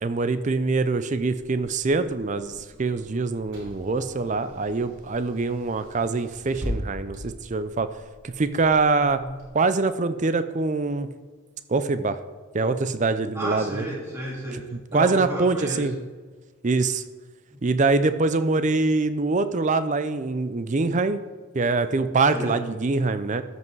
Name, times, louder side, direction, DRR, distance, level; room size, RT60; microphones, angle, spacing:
voice 1, 0.0-7.9 8.2-9.2 9.5-11.1 11.7-12.2 12.5-13.9 14.9-15.9 16.6-17.0 17.6-21.2 21.5-23.4, right 3 dB, 35° right, 12 dB, 0.5 m, -24 dB
Car / Engine, 1.1-9.5, equal, 55° right, 3.5 m, -40 dB
voice 2, 13.3-15.9 17.5-17.6 22.3-22.6, right 1 dB, 10° right, -4 dB, 2.6 m, -32 dB
13.5 x 5.6 x 4.7 m, 1.4 s
head